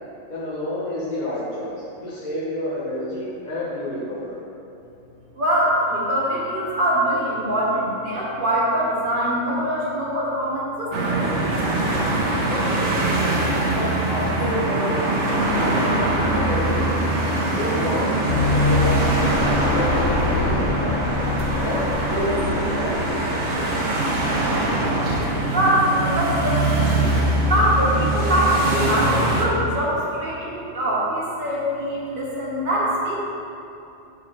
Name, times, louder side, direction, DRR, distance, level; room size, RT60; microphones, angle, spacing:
voice 1, 0.3-4.4 12.5-13.1 13.7-15.0 15.5-17.0 17.5-21.0 21.5-23.8, left 1 dB, 35° left, -9 dB, 1.0 m, -29 dB
voice 2, 5.3-11.5 25.5-26.8 27.4-33.2, right 1 dB, 40° right, -7 dB, 1.4 m, -23 dB
sound 1, 10.9-29.5, right 2 dB, 65° right, 1.2 m, -23 dB
sound 2, 18.3-23.7, left 2 dB, 65° left, 0.9 m, -24 dB
6.3 x 4.7 x 3.6 m, 2.8 s
omnidirectional pair, 1.4 m